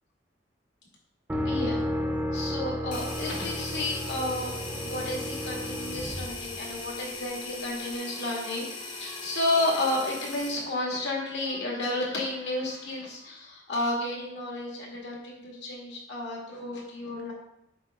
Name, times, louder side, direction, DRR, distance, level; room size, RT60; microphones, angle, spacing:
sound 1, 1.3-7.2, equal, 10° right, 0.5 m, -33 dB
voice 1, 1.4-1.8 2.3-17.3, left 1 dB, 70° left, -2 dB, 2.0 m, -32 dB
sound 2, 2.9-10.6, left 3 dB, 45° left, 1.7 m, -39 dB
7.3 x 3.1 x 5.1 m, 0.79 s
head